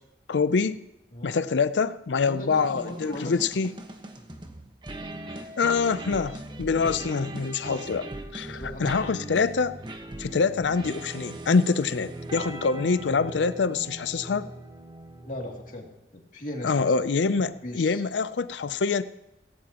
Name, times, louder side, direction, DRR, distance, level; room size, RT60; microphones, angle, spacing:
voice 1, 0.3-0.8 1.2-3.7 5.6-9.8 10.2-14.5 16.6-19.0, left 4 dB, 80° left, 14 dB, 0.5 m, -25 dB
voice 2, 2.3-3.6 8.4-9.1 15.2-15.9 16.1-16.9 17.6-18.0, left 1 dB, 45° left, 0 dB, 2.6 m, -38 dB
sound 1, 2.5-16.0, right 1 dB, 25° right, 1.2 m, -40 dB
17.5 x 16.5 x 3.0 m, 0.96 s
head